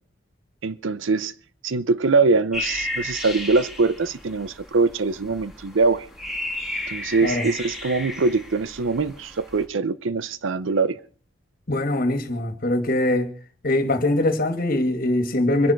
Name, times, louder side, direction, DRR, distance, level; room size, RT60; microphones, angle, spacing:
voice 1, 0.6-1.3 1.6-6.1 6.9-11.0, right 4 dB, 75° right, 0.6 m, -23 dB
sound 1, 2.5-9.6, left 1 dB, ahead, 2.8 m, -33 dB
voice 2, 11.7-13.3 13.6-15.7, left 1 dB, 45° left, 2.3 m, -22 dB
24.5 x 11.0 x 4.5 m
head